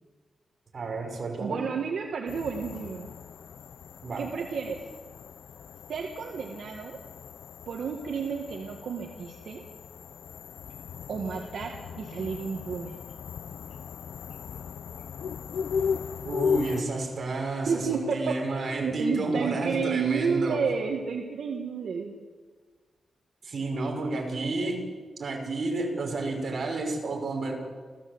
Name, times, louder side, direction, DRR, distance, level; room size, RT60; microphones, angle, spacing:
voice 1, 0.7-1.6 4.0-4.3 16.2-20.6 23.4-24.9 25.2-27.5, right 2 dB, 40° right, 1 dB, 5.5 m, -31 dB
voice 2, 1.4-3.1 4.2-4.8 5.9-7.0 7.7-9.6 11.1-13.0 17.6-22.2, right 6 dB, 65° right, 1 dB, 1.9 m, -31 dB
sound 1, 2.3-16.8, left 6 dB, 90° left, 0.7 m, -36 dB
29.0 x 15.0 x 8.1 m, 1.5 s
wide cardioid pair, 170°, 0 cm